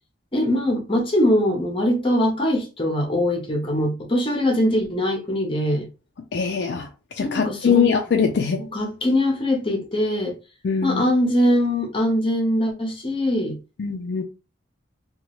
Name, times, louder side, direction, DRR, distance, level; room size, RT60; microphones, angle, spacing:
voice 1, 0.3-5.9 7.2-7.9 8.6-10.4 10.8-13.6, left 1 dB, 25° left, 0.7 m, -22 dB
voice 2, 6.3-6.9 7.2-8.6 10.6-11.0 13.8-14.2, left 6 dB, 55° left, 0.4 m, -22 dB
2.9 x 2.3 x 2.9 m
head